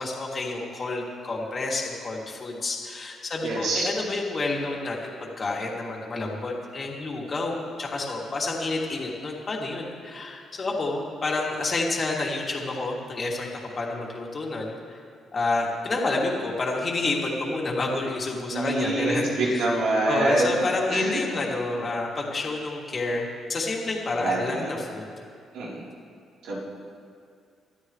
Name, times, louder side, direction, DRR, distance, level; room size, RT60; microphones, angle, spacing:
voice 1, 0.0-13.5 13.8-15.0 15.3-19.8 20.0-25.1, left 2 dB, 40° left, -2 dB, 2.8 m, -29 dB
voice 2, 3.4-3.9 18.5-21.2 24.2-24.7 25.5-25.8 26.4-26.6, right 2 dB, 85° right, -6 dB, 3.9 m, -26 dB
25.0 x 13.0 x 3.3 m, 2.2 s
cardioid pair, 90°, 0 cm